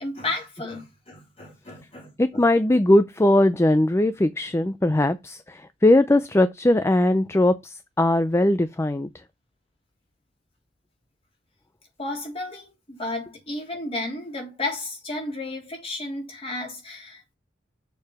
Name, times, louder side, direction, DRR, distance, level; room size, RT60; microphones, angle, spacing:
voice 1, 0.0-2.5 12.0-17.2, left 2 dB, 35° left, 3.5 m, -33 dB
voice 2, 2.2-9.1, left 1 dB, 15° left, 0.4 m, -20 dB
6.8 x 4.7 x 5.9 m
head